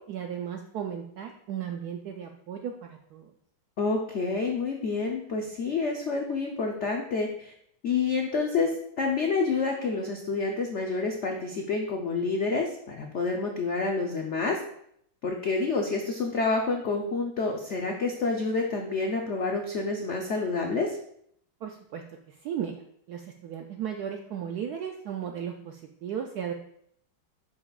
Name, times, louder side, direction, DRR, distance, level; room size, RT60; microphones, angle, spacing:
voice 1, 0.0-3.3 21.6-26.5, right 8 dB, 75° right, 3 dB, 0.9 m, -36 dB
voice 2, 3.8-7.5 7.8-14.6 15.2-21.0, left 4 dB, 75° left, 1 dB, 0.6 m, -28 dB
10.5 x 5.8 x 2.4 m, 0.69 s
omnidirectional pair, 2.2 m